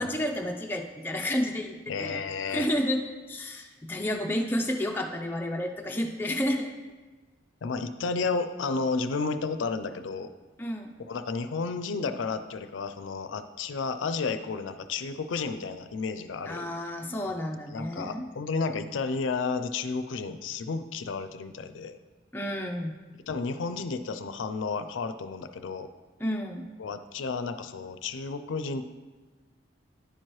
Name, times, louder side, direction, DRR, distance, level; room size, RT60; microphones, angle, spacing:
voice 1, 0.0-2.2 2.5-3.0 3.3-6.7 10.6-10.9 16.5-18.3 22.3-22.9 26.2-26.7, left 1 dB, 10° left, 1 dB, 0.4 m, -30 dB
voice 2, 1.9-2.7 7.6-10.3 11.1-16.7 17.3-17.5 17.7-22.0 23.3-25.9 26.8-28.8, left 4 dB, 90° left, 10 dB, 0.4 m, -32 dB
10.0 x 4.6 x 3.1 m, 1.3 s
head